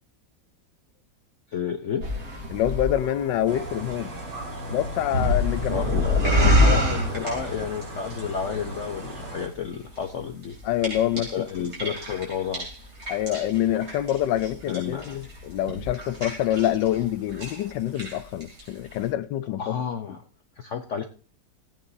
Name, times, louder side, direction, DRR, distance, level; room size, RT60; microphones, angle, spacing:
voice 1, 1.5-2.0 5.7-10.5 11.3-12.7 14.7-15.2 19.6-20.2 20.6-21.1, left 7 dB, 60° left, 0.8 m, -31 dB
sound 1, 2.0-8.2 8.4-9.1 9.7-10.0 10.4-17.0 17.3-17.7 18.0-18.6 18.9-19.0, left 1 dB, 55° right, 4.3 m, -26 dB
voice 2, 2.5-4.1 4.7-5.9 6.6-6.8 10.6-11.9 13.1-19.8, left 12 dB, 75° left, 1.3 m, -26 dB
sound 2, 3.5-9.5, right 1 dB, 75° right, 4.6 m, -37 dB
16.5 x 8.7 x 2.7 m
omnidirectional pair, 2.0 m